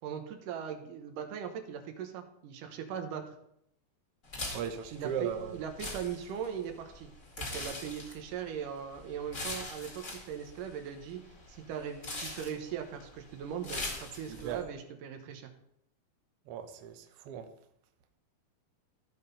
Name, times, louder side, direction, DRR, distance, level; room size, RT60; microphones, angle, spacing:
voice 1, 0.0-3.4 4.9-7.1 7.4-15.5, right 8 dB, 90° right, 2.7 m, -39 dB
sound 1, 4.3-14.6, left 2 dB, 30° left, 2.1 m, -43 dB
voice 2, 4.5-5.6 14.3-14.6 16.5-17.5, right 8 dB, 70° right, 1.4 m, -37 dB
15.0 x 5.7 x 4.1 m
omnidirectional pair, 3.7 m